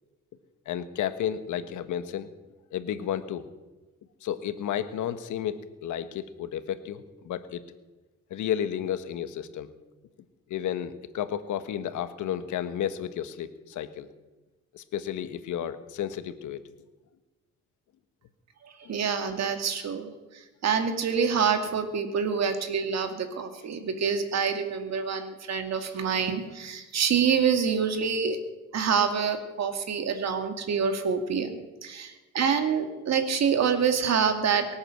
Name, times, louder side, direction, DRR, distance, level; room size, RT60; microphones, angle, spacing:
voice 1, 0.7-2.3 2.7-3.4 4.2-7.6 8.3-9.7 10.5-14.1 14.7-16.6 18.8-19.0, left 10 dB, 75° left, 11 dB, 1.3 m, -32 dB
voice 2, 18.9-20.1 20.6-28.4 28.7-31.5 31.8-34.7, right 6 dB, 60° right, 6 dB, 2.4 m, -26 dB
23.5 x 8.9 x 6.6 m, 1.2 s
cardioid pair, 90°, 30 cm